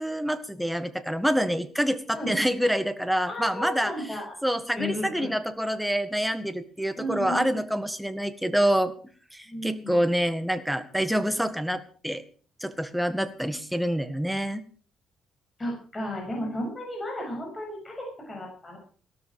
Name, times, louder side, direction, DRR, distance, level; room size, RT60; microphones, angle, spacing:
voice 1, 0.0-3.9 4.4-8.9 9.3-12.2 12.6-14.6, equal, ahead, 10 dB, 1.8 m, -27 dB
voice 2, 3.2-4.3 4.7-5.3 7.0-7.6 9.5-10.0 15.6-18.8, left 1 dB, 20° left, 0 dB, 7.3 m, -34 dB
17.5 x 13.0 x 5.1 m, 0.42 s
cardioid pair, 90°, 0 cm